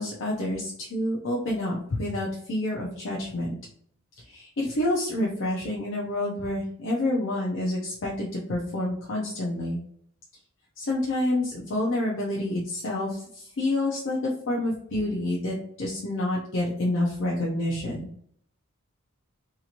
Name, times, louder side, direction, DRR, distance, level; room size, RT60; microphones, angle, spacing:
voice 1, 0.0-3.6 4.3-9.8 10.8-18.1, left 1 dB, 55° left, -4 dB, 0.5 m, -28 dB
2.9 x 2.8 x 2.5 m, 0.63 s
head